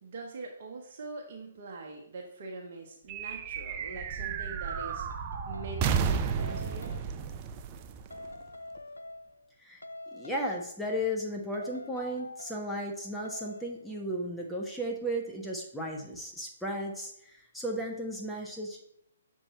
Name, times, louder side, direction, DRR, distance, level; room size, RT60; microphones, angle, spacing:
voice 1, 0.0-5.0 5.5-6.9, right 3 dB, 50° right, 1 dB, 0.9 m, -43 dB
sound 1, 3.1-8.8, right 6 dB, 30° right, 0.4 m, -33 dB
sound 2, 3.7-3.9 4.7-5.9 6.4-7.1 8.1-9.5 9.8-10.7 11.5-12.7 13.2-13.8, left 2 dB, 80° left, 0.3 m, -46 dB
voice 2, 10.1-18.8, equal, 5° left, -1 dB, 0.8 m, -35 dB
6.6 x 3.6 x 4.3 m, 0.73 s
figure-of-eight pair, 130°, 0 cm